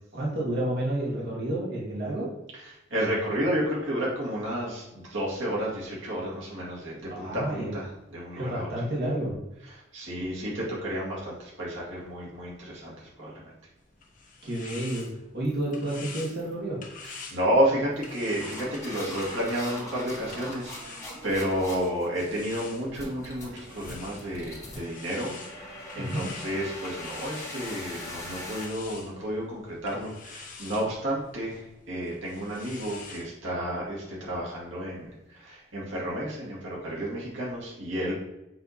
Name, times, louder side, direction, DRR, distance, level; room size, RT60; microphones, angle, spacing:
voice 1, 0.1-2.3 7.1-7.8 8.3-9.4 14.4-15.1 15.3-16.8 26.0-26.3, right 1 dB, 55° right, -5 dB, 2.1 m, -30 dB
voice 2, 2.9-8.7 9.9-13.5 17.0-38.1, equal, 70° right, -5 dB, 2.1 m, -31 dB
sound 1, 13.8-21.6 22.2-33.3, left 4 dB, 45° left, 1.2 m, -47 dB
sound 2, 14.9-15.1 15.4-15.7 16.2-16.5 17.0-17.3 17.9-28.6, left 1 dB, 15° left, 2.1 m, -41 dB
7.8 x 3.7 x 4.2 m, 0.91 s
head